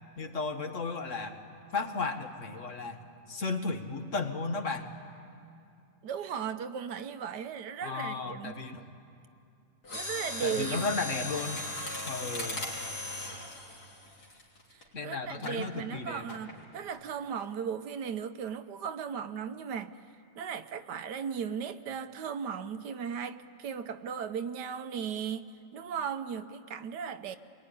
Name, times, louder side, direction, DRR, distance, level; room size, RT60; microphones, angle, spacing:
voice 1, 0.2-1.4 1.7-3.0 3.3-4.9 7.8-8.9 10.4-11.6 12.1-12.7 14.9-16.3, left 4 dB, 45° left, 5 dB, 1.8 m, -34 dB
voice 2, 6.0-8.6 9.9-10.8 12.2-12.3 14.7-20.0 20.4-27.4, right 7 dB, 75° right, 10 dB, 1.4 m, -36 dB
Mechanisms, 9.8-14.8 15.4-15.6 16.3-16.6 16.9-17.0, left 2 dB, 65° left, 3.7 m, -38 dB
27.0 x 21.5 x 9.9 m, 2.4 s
omnidirectional pair, 1.8 m